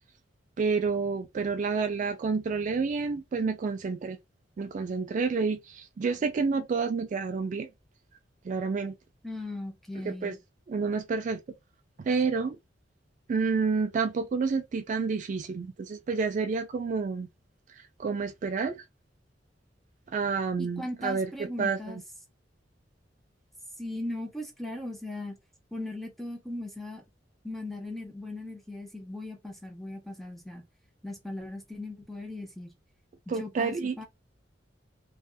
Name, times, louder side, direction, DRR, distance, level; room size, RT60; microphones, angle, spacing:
voice 1, 0.6-4.2 4.6-7.7 8.4-8.9 10.0-10.3 10.7-11.4 12.0-12.6 13.3-17.3 17.7-18.8 20.1-21.3 21.6-21.8 33.3-34.0, right 4 dB, 40° right, 0.3 m, -29 dB
voice 2, 9.2-10.4 20.6-22.0 23.8-25.3 25.7-27.0 27.4-30.6 31.0-32.7 33.3-34.1, left 1 dB, ahead, 0.6 m, -38 dB
2.6 x 2.3 x 2.3 m
head